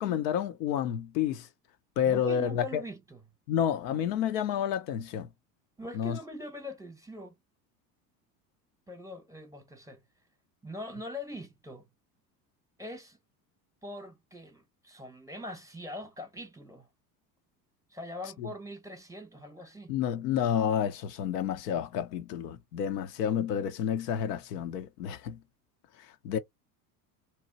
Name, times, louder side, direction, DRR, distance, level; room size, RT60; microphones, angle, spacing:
voice 1, 0.0-1.5 2.0-2.8 3.5-5.3 5.9-6.2 18.4-18.5 19.9-25.4 26.2-26.4, left 9 dB, 70° left, 0.6 m, -30 dB
voice 2, 2.0-3.2 5.8-7.3 8.9-10.0 10.6-11.9 12.8-13.2 13.8-16.9 17.9-19.9, left 1 dB, 5° right, 0.9 m, -42 dB
2.9 x 2.0 x 2.8 m
hypercardioid pair, 80°, 49 cm